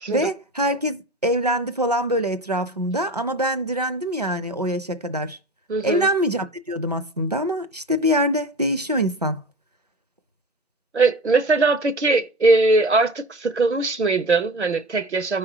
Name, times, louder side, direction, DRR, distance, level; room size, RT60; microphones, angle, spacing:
voice 1, 0.1-5.4 5.8-9.4, equal, 40° right, 0.5 m, -24 dB
voice 2, 5.7-6.1 10.9-15.4, right 3 dB, 90° right, 0.9 m, -20 dB
14.0 x 4.9 x 2.7 m
figure-of-eight pair, 170°, 33 cm